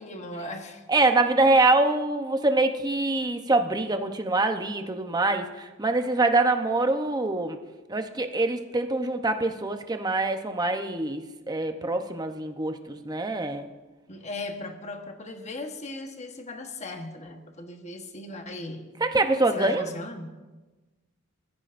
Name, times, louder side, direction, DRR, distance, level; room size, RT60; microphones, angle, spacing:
voice 1, 0.0-0.8 14.1-18.9 19.5-20.3, left 2 dB, 30° left, 5 dB, 1.2 m, -37 dB
voice 2, 0.9-7.6 7.9-13.7 19.0-19.8, right 2 dB, 20° right, 6 dB, 0.8 m, -24 dB
22.5 x 14.0 x 2.6 m, 1.2 s
head